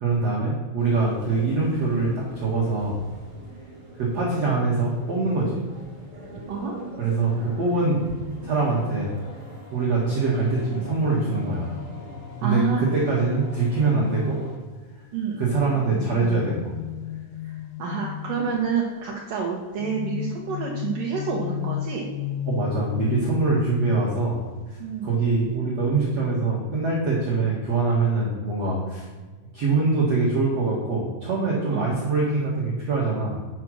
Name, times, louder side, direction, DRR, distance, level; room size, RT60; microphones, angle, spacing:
voice 1, 0.0-3.0 4.0-5.6 7.0-8.1 8.4-9.1 9.7-11.7 12.4-14.4 15.4-16.7 18.4-18.5 22.5-24.4 24.7-29.1 29.5-33.4, right 3 dB, 60° right, -5 dB, 1.7 m, -24 dB
sound 1, 0.8-14.6, right 1 dB, 25° right, 0.8 m, -42 dB
sound 2, 11.3-14.9 15.5-18.8 19.8-25.0 25.3-25.6, left 11 dB, 85° left, 3.2 m, -35 dB
voice 2, 12.4-12.8 15.1-15.4 17.8-22.1 24.8-25.1 31.7-31.9, right 6 dB, 85° right, -1 dB, 1.8 m, -28 dB
10.0 x 6.1 x 6.3 m, 1.4 s
omnidirectional pair, 5.7 m